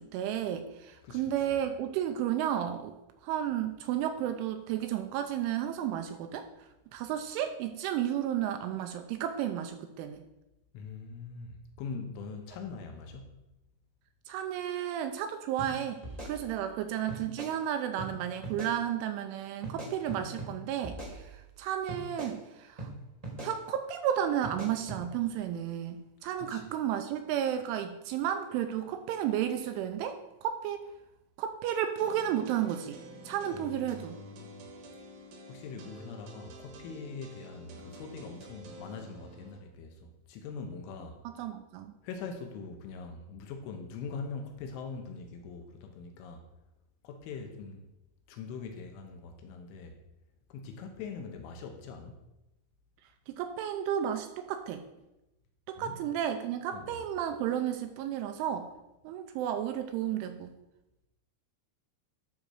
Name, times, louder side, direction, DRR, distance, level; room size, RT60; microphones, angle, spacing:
voice 1, 0.0-2.9 3.2-6.5 6.9-10.2 14.3-16.0 16.2-22.9 23.4-30.9 31.4-33.0 33.3-34.2 41.2-41.9 53.3-54.8 55.7-58.7 59.0-60.5, right 10 dB, 85° right, 6 dB, 2.9 m, -32 dB
voice 2, 1.0-1.6 10.7-13.4 26.4-26.7 33.5-34.6 35.5-41.2 42.0-46.4 47.0-47.9 48.3-50.0 50.5-52.2 55.8-56.0 56.7-57.0, left 4 dB, 75° left, 4 dB, 3.2 m, -42 dB
sound 1, 15.6-15.7 16.0-16.8 17.1-17.5 18.0-18.1 18.4-18.7 19.6-20.5 20.8-21.6 21.9-22.3 22.8-22.9 23.2-23.5 24.4-25.0, right 2 dB, 25° right, 0.7 m, -41 dB
sound 2, 32.0-39.6, equal, 70° right, 2.4 m, -49 dB
12.0 x 4.3 x 6.5 m, 0.94 s
omnidirectional pair, 5.9 m